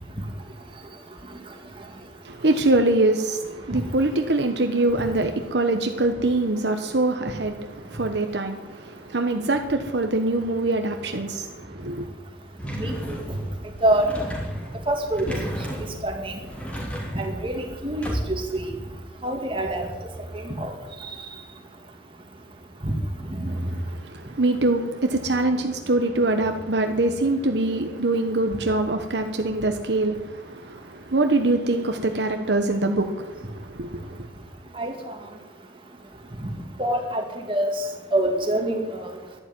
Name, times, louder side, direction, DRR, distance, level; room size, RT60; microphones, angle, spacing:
voice 1, 2.2-12.1 23.5-34.3, right 2 dB, 65° right, 1.1 m, -24 dB
sound 1, 12.6-18.6, equal, 5° left, 3.3 m, -33 dB
voice 2, 14.9-15.4 16.0-16.4 17.2-18.7 19.2-19.9 20.3-20.7 22.8-22.9 23.4-23.5 34.8-34.9 36.8-37.2 37.5-37.7 38.1-39.1, right 1 dB, 25° right, 2.4 m, -25 dB
12.0 x 11.5 x 9.3 m
head